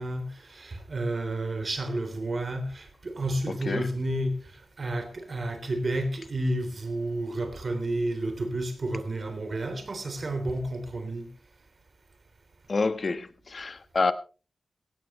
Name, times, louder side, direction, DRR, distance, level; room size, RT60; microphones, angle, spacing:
voice 1, 0.0-4.4 4.8-11.3, right 1 dB, 45° right, 3.3 m, -31 dB
voice 2, 3.5-3.9 12.7-14.1, left 3 dB, 45° left, 1.2 m, -28 dB
17.0 x 16.0 x 3.1 m
wide cardioid pair, 105°, 0 cm